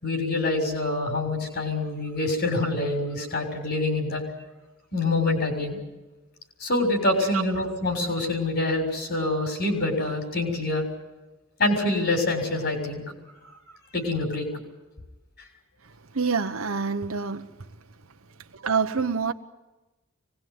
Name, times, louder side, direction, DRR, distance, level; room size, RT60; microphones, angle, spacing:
voice 1, 0.0-4.2 4.9-5.8 6.6-10.9 11.6-13.0 13.9-14.5, left 2 dB, 50° left, 6.7 m, -26 dB
voice 2, 15.8-17.7 18.4-19.3, right 5 dB, 70° right, 1.0 m, -27 dB
25.0 x 20.5 x 9.7 m
head